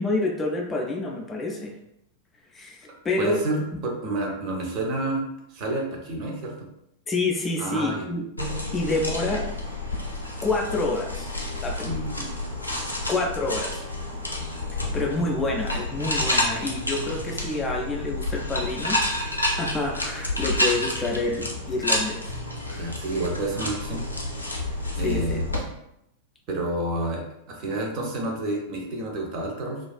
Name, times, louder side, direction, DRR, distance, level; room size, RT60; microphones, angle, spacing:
voice 1, 0.0-1.7 2.5-3.4 3.7-3.8 7.1-8.3 8.7-9.5 10.4-11.3 11.6-12.0 13.1-13.8 14.9-19.3 19.6-22.4 22.7-22.8 25.0-25.4, left 2 dB, 20° left, 0 dB, 0.4 m, -28 dB
voice 2, 3.2-5.2 5.5-6.7 7.6-8.1 11.8-12.4 22.7-24.0 25.0-25.5 26.5-29.8, right 2 dB, 40° right, 1 dB, 0.5 m, -29 dB
sound 1, 8.4-25.6, left 1 dB, 85° left, 0.4 m, -29 dB
2.4 x 2.3 x 2.2 m, 0.80 s
figure-of-eight pair, 90°, 0 cm